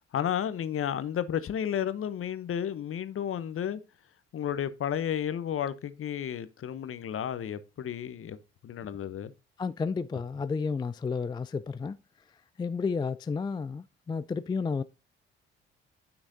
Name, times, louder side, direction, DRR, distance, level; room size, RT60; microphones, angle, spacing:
voice 1, 0.1-3.8 4.3-9.3, left 9 dB, 45° left, 0.9 m, -32 dB
voice 2, 9.6-12.0 12.6-14.8, left 5 dB, 15° left, 0.3 m, -31 dB
9.7 x 6.0 x 2.7 m
hypercardioid pair, 45°, 30 cm